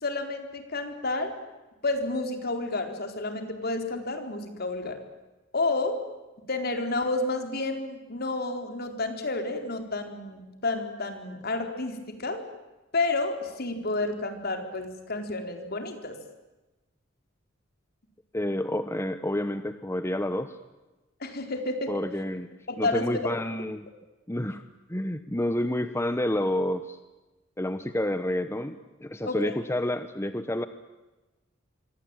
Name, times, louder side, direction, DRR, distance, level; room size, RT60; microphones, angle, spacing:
voice 1, 0.0-1.3 1.8-5.0 5.5-6.0 6.5-12.4 12.9-16.2 21.2-21.9 22.7-23.1 29.3-29.4, left 2 dB, 55° left, 6 dB, 4.2 m, -30 dB
voice 2, 18.3-20.6 21.9-22.5 22.8-23.9 24.3-24.6 24.9-27.0 27.6-28.7 29.0-30.6, left 1 dB, 15° left, 10 dB, 1.0 m, -29 dB
27.0 x 24.5 x 9.1 m, 1.1 s
head